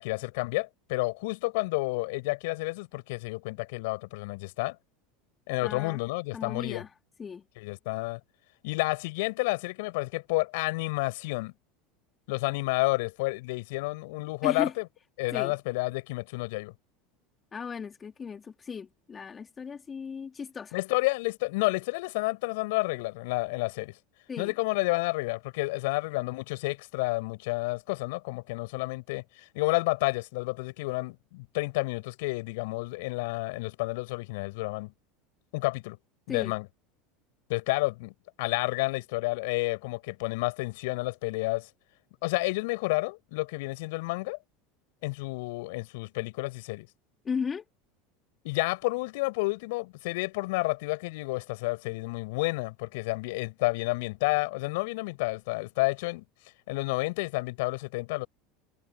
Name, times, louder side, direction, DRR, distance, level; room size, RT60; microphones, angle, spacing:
voice 1, 0.0-4.8 5.5-6.8 7.6-8.2 8.6-11.5 12.3-14.9 15.2-16.7 20.7-23.9 24.4-29.2 29.5-34.9 35.5-36.0 36.3-36.7 37.5-38.1 38.4-41.7 42.2-44.4 45.0-46.9 48.4-56.2 56.7-58.3, left 24 dB, 70° left, 6.3 m, -30 dB
voice 2, 5.6-6.0 6.3-6.9 7.2-7.4 14.4-14.7 15.3-15.5 17.5-20.8 24.3-24.5 36.3-36.5 47.3-47.7, left 6 dB, 25° left, 3.5 m, -36 dB
hypercardioid pair, 90°, 0 cm